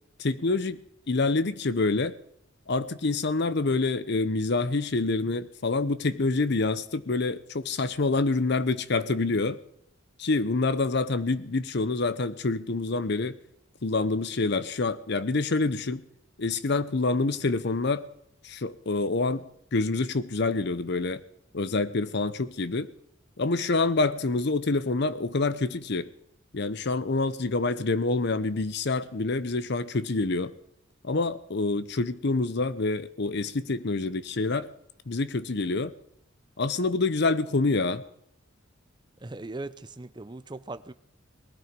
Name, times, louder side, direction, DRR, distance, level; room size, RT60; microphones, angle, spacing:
voice 1, 0.2-0.8 1.1-2.1 2.7-9.6 10.2-13.4 13.8-16.0 16.4-18.1 18.4-19.4 19.7-21.2 21.5-22.9 23.4-26.1 26.5-30.5 31.0-34.7 35.1-35.9 36.6-38.0, left 3 dB, 55° left, 0.8 m, -27 dB
voice 2, 39.2-40.9, right 2 dB, 20° right, 0.6 m, -39 dB
19.5 x 12.5 x 5.2 m
head